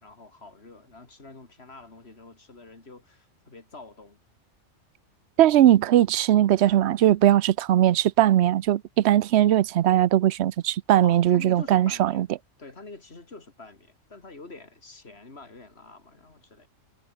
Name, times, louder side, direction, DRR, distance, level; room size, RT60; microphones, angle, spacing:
voice 1, 0.0-4.2 11.0-12.2 12.6-16.7, left 3 dB, 55° left, 3.5 m, -46 dB
voice 2, 5.4-12.3, right 12 dB, 65° right, 0.9 m, -20 dB
omnidirectional pair, 1.3 m